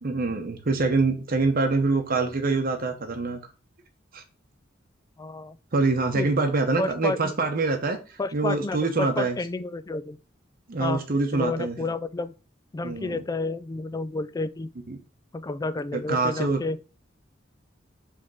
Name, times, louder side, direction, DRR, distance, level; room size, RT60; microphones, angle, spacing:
voice 1, 0.0-3.4 4.1-4.2 5.7-9.4 10.7-11.8 12.8-13.2 14.9-15.0 15.9-16.6, right 3 dB, 50° right, 0.8 m, -25 dB
voice 2, 5.2-5.6 6.1-6.3 6.8-7.3 8.2-10.2 10.8-11.0 11.3-12.3 12.7-14.7 15.3-16.8, left 3 dB, 20° left, 0.3 m, -30 dB
5.2 x 3.5 x 5.5 m
head